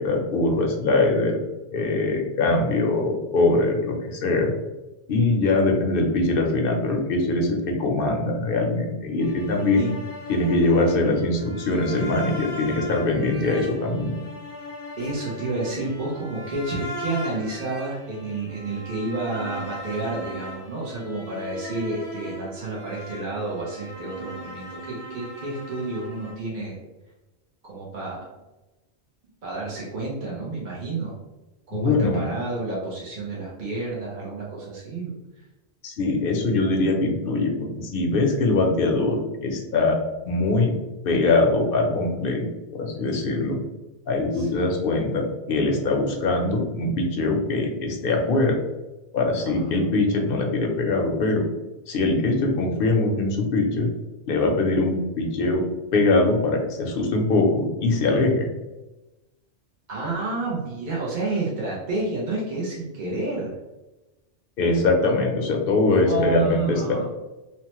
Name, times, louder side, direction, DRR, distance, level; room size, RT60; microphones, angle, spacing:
voice 1, 0.0-1.4 1.7-4.5 5.1-9.9 10.3-14.2 31.7-32.2 35.8-40.0 40.2-40.7 41.0-42.5 42.7-43.6 44.1-48.6 49.1-51.4 51.9-53.9 54.3-55.6 55.9-58.5 64.6-67.1, left 2 dB, 60° left, 1 dB, 0.7 m, -22 dB
sound 1, 9.2-26.3, equal, 30° right, 1.1 m, -38 dB
voice 2, 15.0-26.8 27.6-28.2 29.4-31.2 31.7-35.2 44.3-44.7 49.4-49.8 59.9-63.5 65.9-67.1, right 2 dB, 50° right, -5 dB, 0.7 m, -30 dB
2.9 x 2.1 x 2.9 m, 1.0 s
omnidirectional pair, 1.1 m